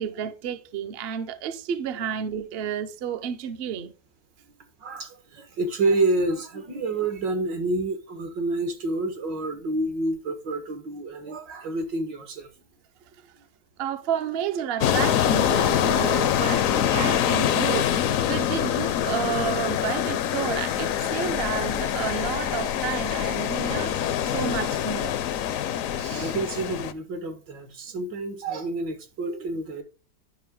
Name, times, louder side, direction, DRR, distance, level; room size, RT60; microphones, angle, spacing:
voice 1, 0.0-3.9 13.8-25.2, right 8 dB, 60° right, 0.6 m, -31 dB
voice 2, 4.8-12.5 25.6-29.8, right 2 dB, 80° right, 2.1 m, -28 dB
sound 1, 14.8-26.9, left 10 dB, 70° left, 0.8 m, -25 dB
10.0 x 5.6 x 3.6 m
omnidirectional pair, 1.9 m